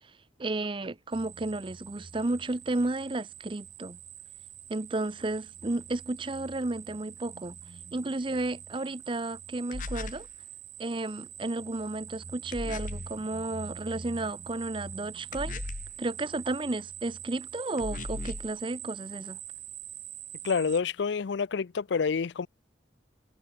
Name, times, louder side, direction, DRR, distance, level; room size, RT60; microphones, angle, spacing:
voice 1, 0.4-4.0 4.7-7.6 7.9-10.3 10.8-15.6 16.0-19.4, right 2 dB, 30° right, 0.6 m, -33 dB
sound 1, 1.1-20.8, right 8 dB, 45° right, 3.9 m, -45 dB
sound 2, 9.7-10.3 12.5-13.1 15.3-16.0 17.8-18.5, left 2 dB, 45° left, 0.9 m, -37 dB
voice 2, 20.4-22.5, left 5 dB, 75° left, 0.5 m, -28 dB
head